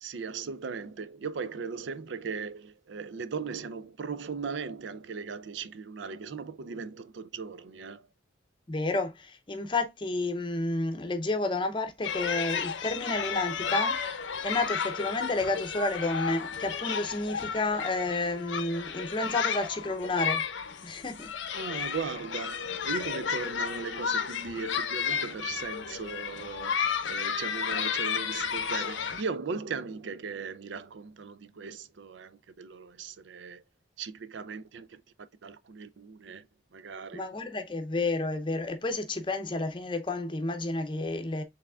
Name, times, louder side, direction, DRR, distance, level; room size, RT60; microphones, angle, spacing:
voice 1, 0.0-8.1 21.5-33.6 34.0-35.0 35.4-36.5 36.7-37.3, right 5 dB, 75° right, 0.4 m, -38 dB
voice 2, 8.7-14.0 14.4-20.5 20.8-21.3 37.1-41.4, left 2 dB, 25° left, 0.6 m, -30 dB
sound 1, 12.0-29.2, left 7 dB, 80° left, 0.6 m, -33 dB
5.7 x 3.4 x 2.4 m
head